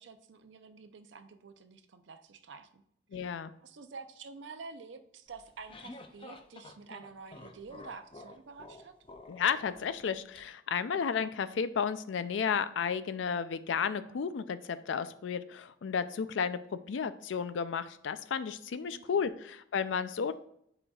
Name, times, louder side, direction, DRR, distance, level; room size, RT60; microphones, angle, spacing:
voice 1, 0.0-2.8 3.6-9.0 18.9-19.3, right 4 dB, 80° right, 9 dB, 0.5 m, -49 dB
voice 2, 3.1-3.5 9.3-16.6 16.9-20.3, left 6 dB, 85° left, 13 dB, 0.4 m, -33 dB
sound 1, 5.3-10.4, left 2 dB, 30° left, 0.4 m, -50 dB
8.6 x 5.0 x 2.3 m, 0.72 s
head